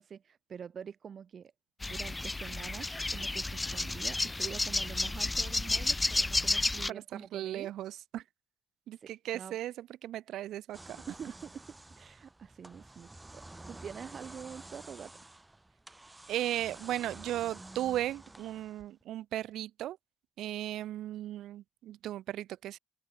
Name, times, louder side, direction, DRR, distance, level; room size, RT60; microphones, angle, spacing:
voice 1, 0.0-1.5 1.9-7.7 9.0-9.6 11.1-13.1 13.3-15.2, right 7 dB, 50° right, 0.7 m, -46 dB
sound 1, 1.8-6.9, left 2 dB, 15° left, 0.5 m, -31 dB
voice 2, 6.9-8.2 8.9-11.0 16.3-20.0 20.4-22.8, right 13 dB, 80° right, 1.1 m, -36 dB
sound 2, 10.7-19.0, right 2 dB, 15° right, 1.0 m, -50 dB
open air
cardioid pair, 90°, 0 cm